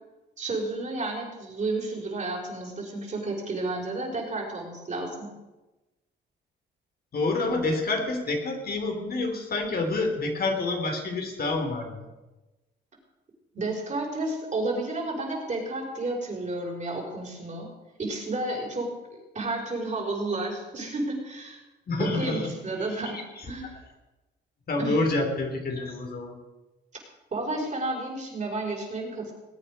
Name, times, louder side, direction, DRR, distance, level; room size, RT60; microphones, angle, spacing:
voice 1, 0.4-5.3 13.5-17.7 18.0-21.6 22.0-23.8 24.8-25.0 27.3-29.3, right 2 dB, 40° right, -1 dB, 5.3 m, -31 dB
voice 2, 7.1-12.0 21.9-22.5 23.0-23.2 24.7-26.4, left 2 dB, 50° left, 2 dB, 3.1 m, -28 dB
20.0 x 9.0 x 5.5 m, 1.1 s
cardioid pair, 90°, 20 cm